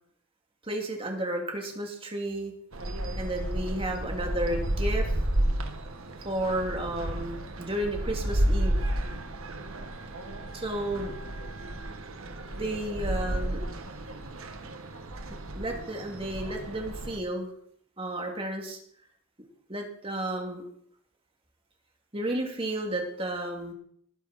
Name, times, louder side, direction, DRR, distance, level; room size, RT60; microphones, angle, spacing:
voice 1, 0.6-2.5 3.1-5.2 6.2-8.9 10.5-11.1 12.6-13.6 15.5-17.5 18.0-18.8 19.7-20.6 22.1-23.7, right 1 dB, 25° right, 1 dB, 2.6 m, -32 dB
sound 1, 2.7-17.2, right 1 dB, 85° right, 1.7 m, -32 dB
20.0 x 9.8 x 4.3 m, 0.66 s
head